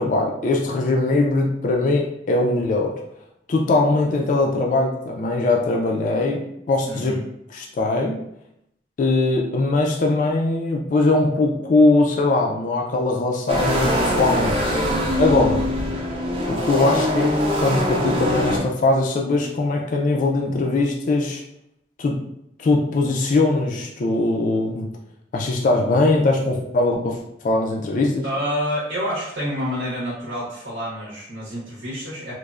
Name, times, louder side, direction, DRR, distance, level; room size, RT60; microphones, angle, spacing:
voice 1, 0.0-2.9 3.5-6.4 6.7-7.2 7.5-8.2 9.0-14.8 15.2-15.7 16.5-21.4 22.0-22.2 22.6-24.9 25.3-27.2 27.4-28.2, left 2 dB, 45° left, 0 dB, 0.3 m, -21 dB
voice 2, 6.9-7.2 28.2-32.4, equal, 90° right, -7 dB, 0.8 m, -28 dB
sound 1, 13.5-18.6, equal, 30° right, 0.5 m, -22 dB
3.1 x 2.0 x 2.4 m, 0.80 s
head